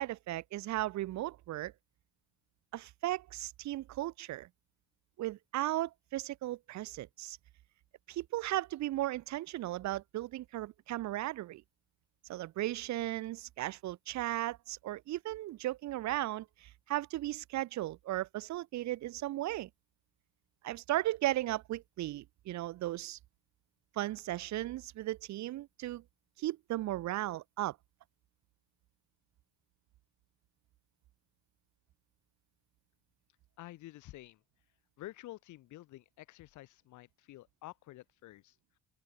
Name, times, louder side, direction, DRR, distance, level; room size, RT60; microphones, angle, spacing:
voice 1, 0.0-1.7 2.7-4.5 5.2-7.4 8.1-11.6 12.3-19.7 20.6-23.2 23.9-26.0 26.4-27.8, right 15 dB, 65° right, 0.6 m, -36 dB
voice 2, 33.6-34.4 35.0-38.6, left 16 dB, 75° left, 0.7 m, -50 dB
open air
cardioid pair, 90°, 30 cm